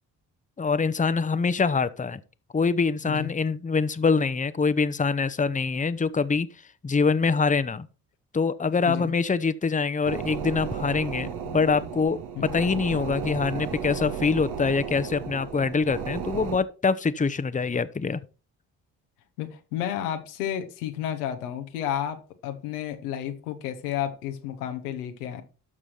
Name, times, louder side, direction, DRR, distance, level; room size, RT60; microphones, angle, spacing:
voice 1, 0.6-2.2 2.5-6.5 6.8-7.9 8.3-18.2, left 4 dB, 15° left, 0.8 m, -24 dB
sound 1, 10.0-16.6, right 7 dB, 60° right, 1.5 m, -34 dB
voice 2, 19.4-25.4, left 10 dB, 90° left, 1.1 m, -31 dB
12.0 x 6.2 x 4.4 m
hypercardioid pair, 40°, 44 cm